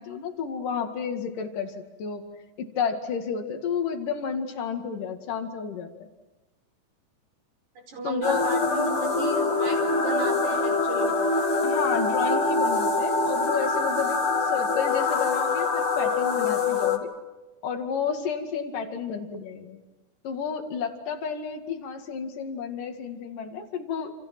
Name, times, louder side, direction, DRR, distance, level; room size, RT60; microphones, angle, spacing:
voice 1, 0.0-2.2 2.6-6.1 8.0-8.5 11.6-17.1 17.6-19.8 20.2-24.1, left 6 dB, 85° left, 5 dB, 3.9 m, -31 dB
voice 2, 7.9-11.1, right 1 dB, 65° right, 3 dB, 6.3 m, -34 dB
sound 1, 8.2-17.0, left 3 dB, 45° left, 3.0 m, -24 dB
29.0 x 29.0 x 6.1 m, 1.1 s
omnidirectional pair, 3.7 m